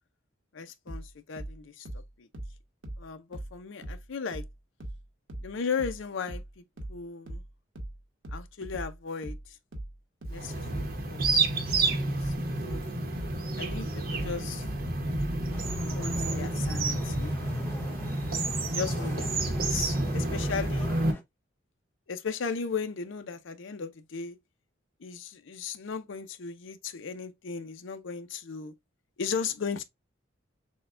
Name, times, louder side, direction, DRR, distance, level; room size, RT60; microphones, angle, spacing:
voice 1, 0.5-2.3 3.0-4.4 5.4-6.6 6.9-7.4 8.3-9.6 10.3-12.8 13.6-14.7 15.9-17.4 18.6-20.9 22.1-24.4 25.0-28.7 29.2-29.8, left 5 dB, 70° left, 0.5 m, -36 dB
sound 1, 0.9-4.1 4.3-17.3, right 1 dB, 90° right, 1.1 m, -40 dB
sound 2, 10.3-21.1, right 2 dB, 45° right, 0.8 m, -29 dB
sound 3, 15.5-21.2, left 2 dB, 10° left, 0.5 m, -47 dB
6.3 x 2.2 x 2.4 m
head